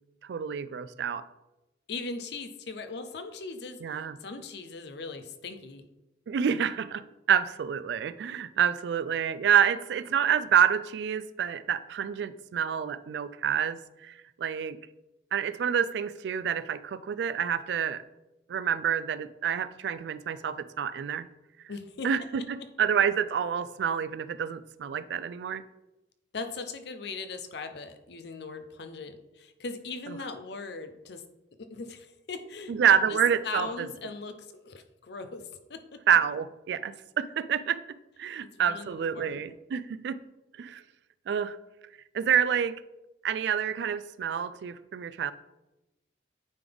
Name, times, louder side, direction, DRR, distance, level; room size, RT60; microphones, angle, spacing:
voice 1, 0.3-1.2 3.8-4.2 6.3-14.8 15.3-18.0 18.5-21.3 22.0-25.6 32.7-33.9 36.1-37.8 38.2-40.2 40.6-40.8 41.3-41.6 42.1-42.8 43.2-45.3, right 8 dB, 70° right, 15 dB, 0.3 m, -28 dB
voice 2, 1.9-5.9 21.7-22.1 22.8-22.9 26.3-31.2 31.7-32.8 33.1-33.2 33.4-35.4 35.7-35.8 38.6-39.4, left 4 dB, 65° left, 9 dB, 0.6 m, -39 dB
9.1 x 3.9 x 3.4 m, 0.99 s
head